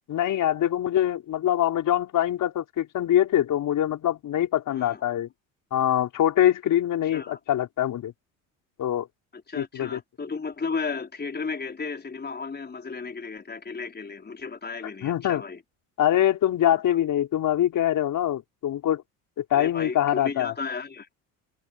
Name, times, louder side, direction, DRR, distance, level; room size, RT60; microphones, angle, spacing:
voice 1, 0.1-5.3 5.7-8.1 8.8-9.1 9.5-10.0 15.0-15.4 16.0-19.0 19.4-20.5, left 11 dB, 55° left, 4.6 m, -24 dB
voice 2, 4.7-5.0 7.1-7.4 9.3-15.6 16.7-16.8 19.5-21.1, left 4 dB, 25° left, 4.8 m, -34 dB
hypercardioid pair, 75°, 39 cm